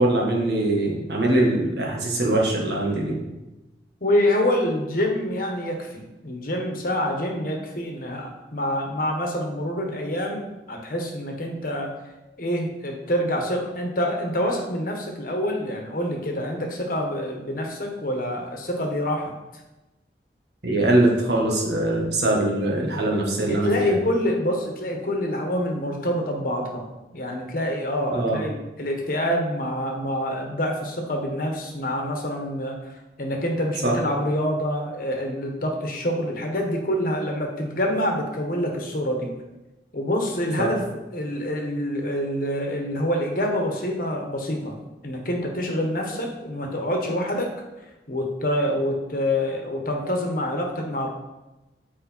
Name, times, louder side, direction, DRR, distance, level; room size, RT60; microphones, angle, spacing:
voice 1, 0.0-3.2 20.6-24.0 28.1-28.4 33.8-33.9 40.6-40.7, right 1 dB, 70° right, -1 dB, 1.8 m, -22 dB
voice 2, 4.0-11.9 12.4-19.3 23.5-26.9 27.1-32.8 33.2-39.3 39.9-40.8 41.1-44.7 45.0-47.5 48.1-51.1, left 1 dB, 50° left, 2 dB, 1.3 m, -26 dB
8.5 x 4.7 x 4.5 m, 1.0 s
head